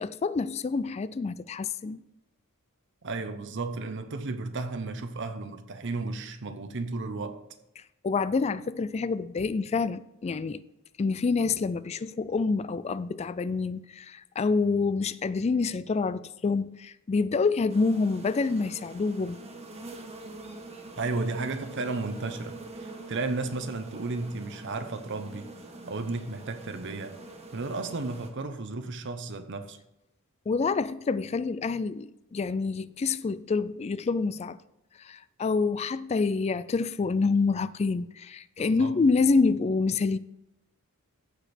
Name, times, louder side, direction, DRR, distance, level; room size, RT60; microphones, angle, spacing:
voice 1, 0.0-2.0 7.8-10.6 11.0-19.4 30.5-34.6 35.0-40.2, left 4 dB, 30° left, 0.3 m, -27 dB
voice 2, 3.0-7.4 21.0-25.5 25.8-27.2 27.5-29.8 38.6-39.0, right 3 dB, 55° right, 0.8 m, -33 dB
sound 1, 17.7-28.3, right 2 dB, 30° right, 1.3 m, -44 dB
15.0 x 5.0 x 4.3 m
head